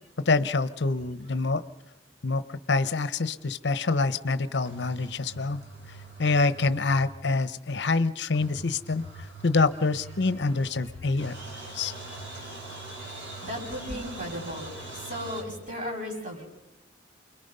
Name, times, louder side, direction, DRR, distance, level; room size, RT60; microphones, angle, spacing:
voice 1, 0.2-1.6 2.2-5.6 6.2-9.0 9.4-11.3 11.7-11.9, left 3 dB, 65° left, 14 dB, 0.8 m, -26 dB
sound 1, 4.6-7.3 7.5-7.6 7.8-7.9 8.3-10.9 11.2-15.4, right 2 dB, 75° right, 5.3 m, -43 dB
voice 2, 10.4-16.5, equal, 40° right, -1 dB, 6.9 m, -38 dB
29.0 x 22.5 x 5.5 m, 0.93 s
head